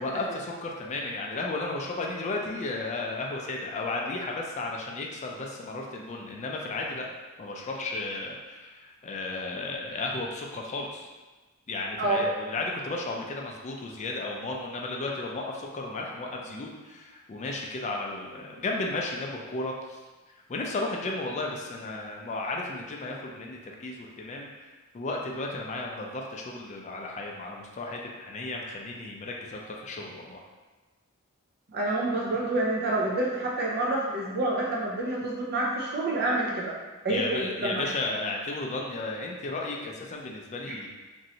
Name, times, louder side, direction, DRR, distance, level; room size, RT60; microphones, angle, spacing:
voice 1, 0.0-7.1 7.4-11.1 11.7-20.0 20.5-30.4 37.1-40.9, left 2 dB, 35° left, 0 dB, 0.4 m, -34 dB
voice 2, 31.7-36.7 37.0-37.9 40.7-40.8, right 2 dB, 45° right, -3 dB, 0.4 m, -28 dB
3.0 x 2.6 x 2.8 m, 1.2 s
head